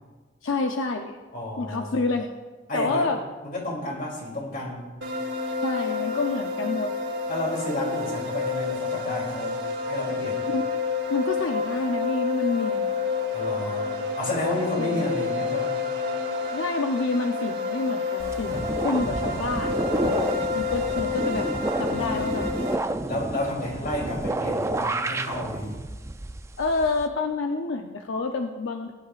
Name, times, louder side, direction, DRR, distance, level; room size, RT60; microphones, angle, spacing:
voice 1, 0.4-1.2 1.6-2.3 2.7-3.2 5.6-6.9 10.5-10.8 11.1-12.9 14.8-15.1 16.5-21.5 21.8-22.5 26.6-28.9, left 3 dB, 80° left, 4 dB, 0.7 m, -28 dB
voice 2, 1.3-2.0 2.7-3.1 3.4-4.8 7.3-9.6 9.8-10.4 13.3-15.7 23.1-25.8, left 1 dB, 45° left, -1 dB, 3.1 m, -31 dB
sound 1, 5.0-22.7, left 4 dB, 90° right, 2.6 m, -29 dB
sound 2, 18.2-27.1, right 2 dB, 15° right, 0.4 m, -30 dB
19.0 x 11.0 x 2.5 m, 1.3 s
head